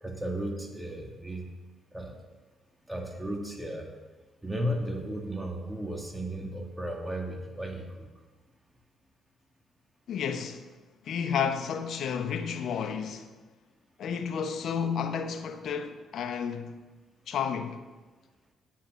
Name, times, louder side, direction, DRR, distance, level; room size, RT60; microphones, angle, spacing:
voice 1, 0.0-1.5 1.9-2.2 2.9-3.9 4.4-8.1, right 1 dB, 10° right, 2.2 m, -34 dB
voice 2, 10.1-10.6 11.0-13.3 14.0-16.8 17.3-17.8, left 7 dB, 65° left, 1.0 m, -31 dB
8.9 x 8.3 x 6.6 m
supercardioid pair, 55°, 0 cm